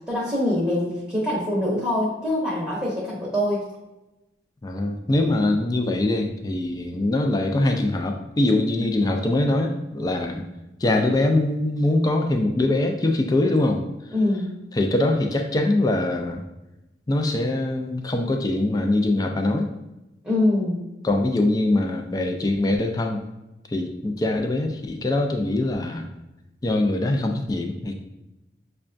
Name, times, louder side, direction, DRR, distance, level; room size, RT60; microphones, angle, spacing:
voice 1, 0.1-3.6 14.1-14.6 20.2-20.8, left 1 dB, 5° right, -6 dB, 0.7 m, -24 dB
voice 2, 4.6-10.4 10.8-13.8 14.7-16.4 17.1-19.7 21.0-23.3 23.7-26.1 26.6-28.0, left 2 dB, 20° left, 4 dB, 0.3 m, -23 dB
6.0 x 2.2 x 2.5 m, 0.99 s
head